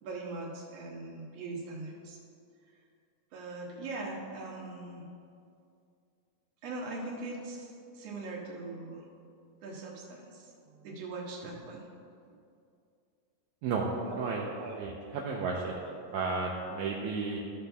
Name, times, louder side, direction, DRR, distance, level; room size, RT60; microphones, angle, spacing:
voice 1, 0.0-2.2 3.3-5.1 6.6-9.1 9.6-11.8 14.1-14.2 14.5-14.8 15.5-15.6, right 2 dB, 60° right, -3 dB, 2.3 m, -41 dB
voice 2, 14.2-14.5 14.8-15.7 16.1-17.4, right 4 dB, 75° right, -3 dB, 2.0 m, -33 dB
14.5 x 6.4 x 3.4 m, 2.5 s
omnidirectional pair, 3.7 m